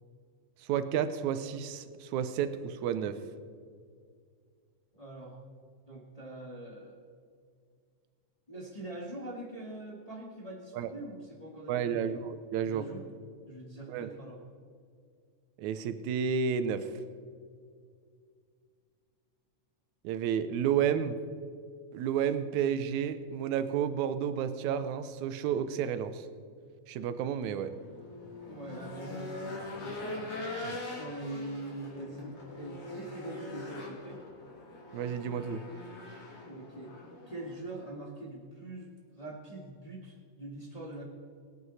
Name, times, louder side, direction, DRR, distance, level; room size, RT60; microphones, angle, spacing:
voice 1, 0.7-3.2 10.7-10.9 11.7-12.8 13.9-14.1 15.6-16.9 20.0-21.2 21.9-26.3 26.9-27.7 30.6-30.8 34.9-35.6, right 8 dB, 80° right, 11 dB, 2.1 m, -31 dB
voice 2, 4.9-5.3 5.8-7.0 8.5-12.2 12.6-13.0 13.5-14.4 28.5-30.2 30.9-34.2 36.4-36.9 37.3-41.0, right 1 dB, 15° left, -3 dB, 1.7 m, -43 dB
Race car auto racing / Engine, 27.5-37.6, left 2 dB, 50° left, 4.1 m, -42 dB
22.0 x 10.0 x 4.2 m, 2.1 s
omnidirectional pair, 3.4 m